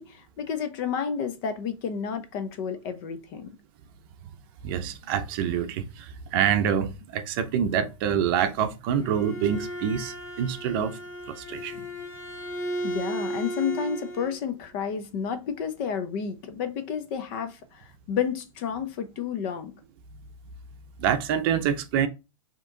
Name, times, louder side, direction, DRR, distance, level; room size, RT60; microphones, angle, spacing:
voice 1, 0.0-3.5 12.8-19.7, left 7 dB, 40° left, 0.7 m, -31 dB
voice 2, 4.6-11.0 11.3-11.9 21.0-22.1, right 8 dB, 40° right, 0.7 m, -26 dB
Bowed string instrument, 8.8-14.4, right 1 dB, 15° left, 1.6 m, -35 dB
4.8 x 3.0 x 3.7 m
hypercardioid pair, 150°, 18 cm